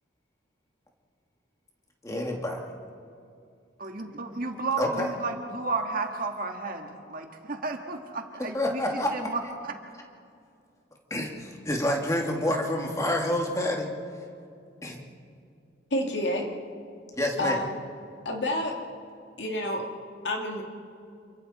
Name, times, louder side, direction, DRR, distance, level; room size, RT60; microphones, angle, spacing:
voice 1, 2.0-2.7 4.8-5.1 8.5-9.3 11.1-13.9 14.8-15.0 17.2-17.7, left 1 dB, 15° left, 1 dB, 2.3 m, -28 dB
voice 2, 3.8-9.7, right 3 dB, 50° right, 3 dB, 1.9 m, -33 dB
voice 3, 15.9-16.5 17.4-17.8 18.2-18.7 19.4-19.8 20.2-20.6, left 1 dB, 70° left, 1 dB, 2.6 m, -28 dB
28.5 x 23.5 x 4.3 m, 2.4 s
head